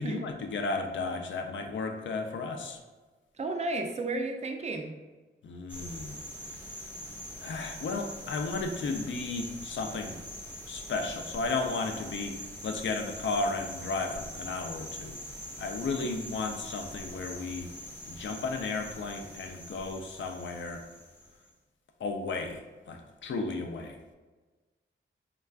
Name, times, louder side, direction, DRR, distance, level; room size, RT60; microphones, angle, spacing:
voice 1, 0.0-2.8 5.4-6.2 7.4-10.2 10.7-12.4 12.6-15.2 15.6-17.7 18.1-20.8 22.0-22.6 22.9-24.0, left 3 dB, 65° left, 4 dB, 0.4 m, -34 dB
voice 2, 3.4-4.9 16.0-16.1, right 2 dB, 30° right, 4 dB, 0.4 m, -33 dB
sound 1, 5.7-21.4, equal, 10° left, 0.6 m, -43 dB
3.4 x 2.3 x 2.3 m, 1.3 s
wide cardioid pair, 85°, 21 cm